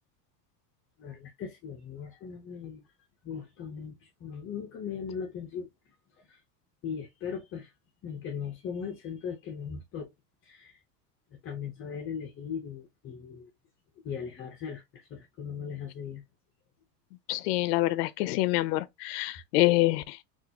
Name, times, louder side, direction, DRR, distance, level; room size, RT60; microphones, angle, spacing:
voice 1, 1.0-2.8 3.2-5.7 6.2-6.4 6.8-7.7 8.0-10.1 10.4-10.8 11.3-13.5 14.0-16.2, left 7 dB, 25° left, 0.6 m, -38 dB
voice 2, 17.3-20.2, left 18 dB, 70° left, 0.6 m, -26 dB
3.9 x 2.5 x 2.7 m
supercardioid pair, 125°, 49 cm